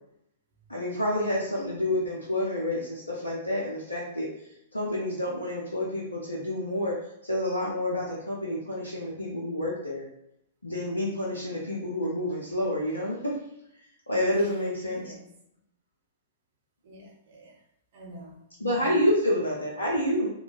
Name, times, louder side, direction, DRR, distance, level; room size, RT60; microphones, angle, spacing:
voice 1, 0.7-4.3 4.7-10.0 10.6-13.4 14.1-15.0 18.6-20.3, left 1 dB, 85° left, -4 dB, 0.6 m, -28 dB
voice 2, 14.8-15.2 16.8-17.6 17.9-18.4 18.7-19.0, right 1 dB, 50° right, -1 dB, 0.9 m, -46 dB
3.8 x 2.4 x 2.3 m, 0.79 s
figure-of-eight pair, 105°, 0 cm